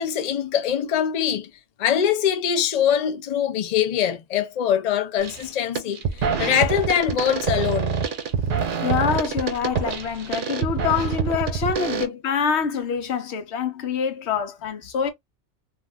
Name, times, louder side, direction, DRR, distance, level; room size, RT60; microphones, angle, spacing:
voice 1, 0.0-1.5 1.8-7.9 11.8-12.0, left 9 dB, 55° left, 0.4 m, -23 dB
sound 1, 5.2-5.5 5.8-12.0, right 6 dB, 55° right, 0.7 m, -26 dB
voice 2, 8.8-15.1, left 7 dB, 75° left, 0.9 m, -25 dB
2.4 x 2.3 x 3.2 m
omnidirectional pair, 1.2 m